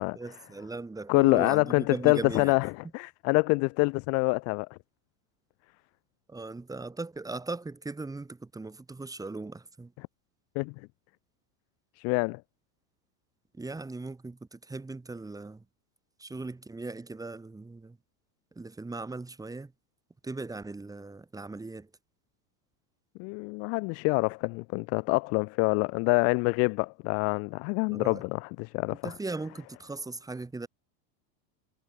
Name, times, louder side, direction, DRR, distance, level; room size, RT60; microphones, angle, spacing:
voice 1, 0.1-2.6 6.3-9.9 13.5-15.7 16.2-18.0 18.6-19.7 20.2-21.9 27.9-28.2 28.9-30.7, right 3 dB, 5° right, 1.8 m, -38 dB
voice 2, 1.1-4.7 10.6-10.7 12.0-12.4 23.2-29.0, left 32 dB, 35° left, 0.4 m, -26 dB
supercardioid pair, 145°, 50 cm